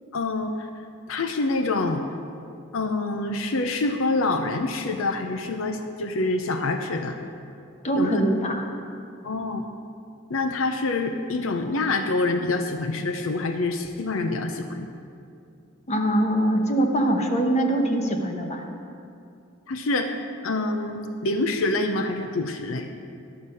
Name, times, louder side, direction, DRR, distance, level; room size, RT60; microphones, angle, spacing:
voice 1, 0.1-0.7 1.1-2.0 2.7-7.2 7.9-8.2 9.2-9.6 10.3-14.9 19.7-20.1 20.4-22.9, left 2 dB, 80° left, 6 dB, 0.6 m, -26 dB
voice 2, 7.8-8.7 15.9-18.6, right 1 dB, 35° left, 3 dB, 0.9 m, -23 dB
11.5 x 6.5 x 5.5 m, 2.5 s
head